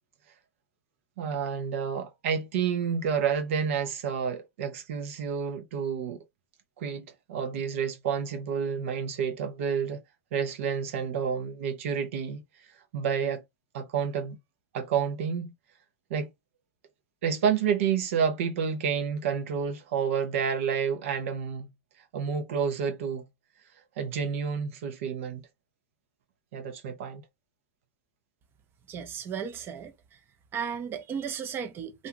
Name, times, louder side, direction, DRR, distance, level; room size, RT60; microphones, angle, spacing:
voice 1, 1.2-6.2 6.8-10.0 10.3-12.4 12.9-13.4 13.7-14.4 14.7-15.5 16.1-16.3 17.2-21.7 22.1-23.2 24.0-25.5 26.5-27.2, right 7 dB, 70° right, 0.7 m, -29 dB
voice 2, 28.9-30.2 30.5-32.1, right 7 dB, 30° right, 0.6 m, -35 dB
2.6 x 2.2 x 3.0 m
hypercardioid pair, 105°, 7 cm